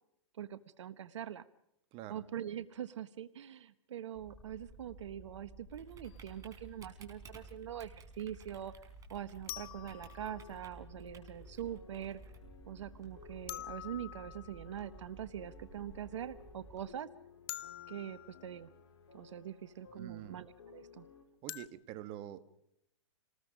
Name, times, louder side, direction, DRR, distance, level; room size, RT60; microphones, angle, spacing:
voice 1, 0.4-1.5 2.1-8.7 9.1-12.2 12.7-17.1 17.9-18.7 19.1-21.0, right 10 dB, 75° right, 13 dB, 1.1 m, -43 dB
voice 2, 1.9-2.2 20.0-20.4 21.4-22.4, right 13 dB, 40° right, 11 dB, 1.6 m, -46 dB
Typing, 4.1-16.8, right 3 dB, 20° right, 4.8 m, -54 dB
sound 1, 6.0-6.2 9.5-10.8 13.5-14.9 17.5-18.7 21.5-21.7, left 16 dB, 55° left, 1.1 m, -46 dB
sound 2, 9.8-21.3, left 6 dB, 70° left, 4.7 m, -58 dB
28.5 x 20.0 x 5.1 m, 0.77 s
hypercardioid pair, 125°, 15 cm